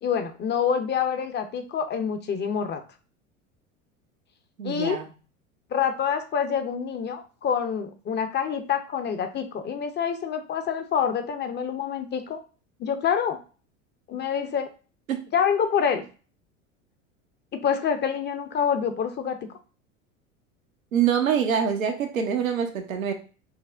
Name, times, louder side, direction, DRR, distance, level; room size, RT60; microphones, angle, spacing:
voice 1, 0.0-2.8 4.6-5.0 5.7-12.4 12.8-13.4 14.1-14.7 15.3-16.0 17.5-19.4, left 7 dB, 25° left, 8 dB, 0.6 m, -26 dB
voice 2, 4.6-5.1 15.1-15.2 20.9-23.1, right 8 dB, 85° right, 5 dB, 0.8 m, -25 dB
5.9 x 2.1 x 2.4 m, 0.36 s
hypercardioid pair, 80°, 40 cm